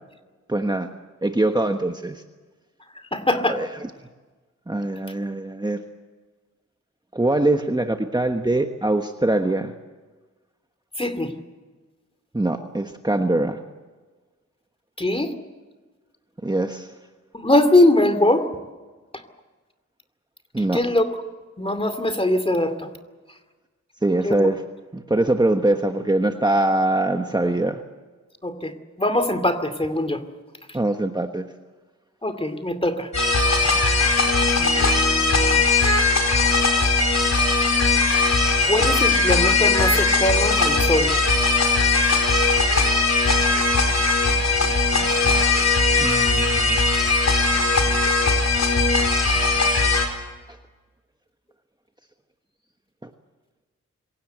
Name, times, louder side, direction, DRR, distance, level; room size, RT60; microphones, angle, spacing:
voice 1, 0.5-0.9 1.2-2.2 3.5-3.7 4.7-5.8 7.1-9.7 12.3-13.6 16.4-16.9 20.5-20.8 24.0-24.6 24.9-27.8 30.7-31.4 46.0-46.9 53.0-53.1, right 2 dB, 15° right, 5 dB, 1.3 m, -23 dB
voice 2, 3.1-3.6 11.0-11.3 15.0-15.3 17.3-18.5 20.6-21.2 21.6-22.9 24.2-24.5 28.4-30.2 32.2-33.1 34.6-35.7 38.6-41.1, left 1 dB, 20° left, 9 dB, 2.6 m, -22 dB
sound 1, 33.1-50.1, left 3 dB, 65° left, 4.4 m, -19 dB
26.0 x 17.0 x 8.1 m, 1.3 s
wide cardioid pair, 85°, 29 cm